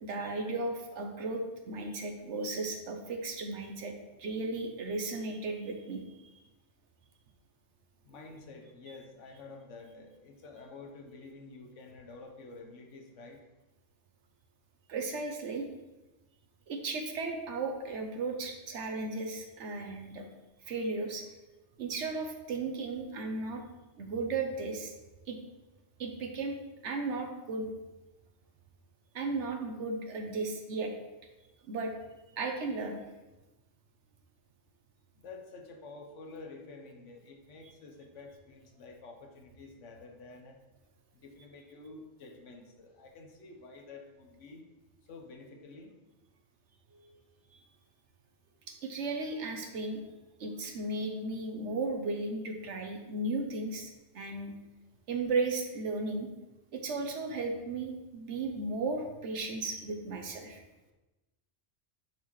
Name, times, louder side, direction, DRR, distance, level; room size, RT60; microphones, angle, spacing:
voice 1, 0.0-3.9 4.2-6.4 14.9-15.7 16.7-20.3 20.6-21.3 21.8-23.6 24.0-24.9 25.3-25.4 26.0-26.6 26.8-27.7 29.1-30.9 31.7-31.9 32.3-33.0 46.9-47.2 47.5-47.6 48.7-50.0 50.4-53.9 54.1-54.5 55.1-56.3 56.7-60.6, right 3 dB, 75° right, 3 dB, 1.1 m, -35 dB
voice 2, 8.0-13.4 35.2-40.6 41.2-44.6 45.1-45.9, left 3 dB, 90° left, 3 dB, 1.3 m, -49 dB
9.1 x 4.3 x 3.1 m, 1.1 s
omnidirectional pair, 1.2 m